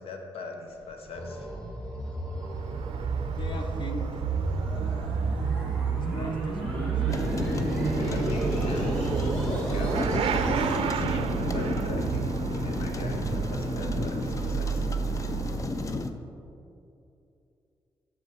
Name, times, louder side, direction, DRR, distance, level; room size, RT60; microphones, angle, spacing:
voice 1, 0.0-1.5 7.9-10.4 10.6-14.9, left 3 dB, 75° left, 3 dB, 0.9 m, -41 dB
sound 1, 0.7-10.8, equal, 10° left, 1.9 m, -36 dB
Motorcycle / Accelerating revving vroom, 2.3-16.1, right 7 dB, 75° right, 0.4 m, -30 dB
voice 2, 3.4-4.3 4.6-5.5 5.9-7.8, left 2 dB, 50° left, 4 dB, 0.9 m, -40 dB
sound 2, 7.1-16.1, left 3 dB, 35° left, 0.5 m, -32 dB
8.1 x 6.3 x 4.4 m, 2.7 s
cardioid pair, 90°, 10 cm